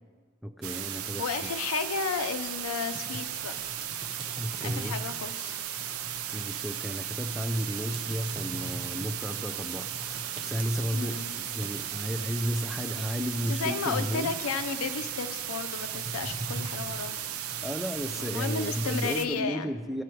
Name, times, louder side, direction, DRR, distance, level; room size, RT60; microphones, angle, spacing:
voice 1, 0.4-1.5 4.4-5.0 6.3-11.3 11.5-14.4 17.6-20.0, equal, ahead, 7 dB, 0.3 m, -33 dB
sound 1, 0.6-19.3, right 10 dB, 80° right, 0.5 m, -36 dB
voice 2, 1.2-3.5 4.6-5.6 10.9-11.3 13.4-17.2 18.2-19.8, left 5 dB, 80° left, 9 dB, 0.5 m, -33 dB
sound 2, 2.9-19.4, right 1 dB, 25° right, 0.7 m, -43 dB
13.5 x 4.9 x 4.5 m, 1.5 s
head